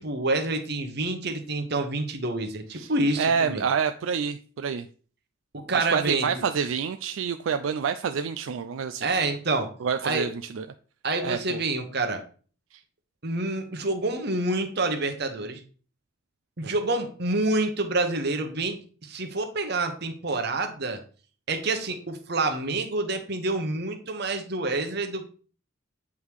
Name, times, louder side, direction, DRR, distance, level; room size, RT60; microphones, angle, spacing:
voice 1, 0.0-3.6 5.5-6.4 9.0-9.7 10.0-10.3 11.0-12.2 13.2-15.6 16.6-21.0 21.5-25.3, right 2 dB, 50° right, 5 dB, 1.1 m, -27 dB
voice 2, 3.2-4.9 5.7-9.1 9.8-10.7 11.2-11.6 12.7-12.8, right 6 dB, 75° right, 9 dB, 0.4 m, -28 dB
8.3 x 3.6 x 4.7 m, 0.41 s
head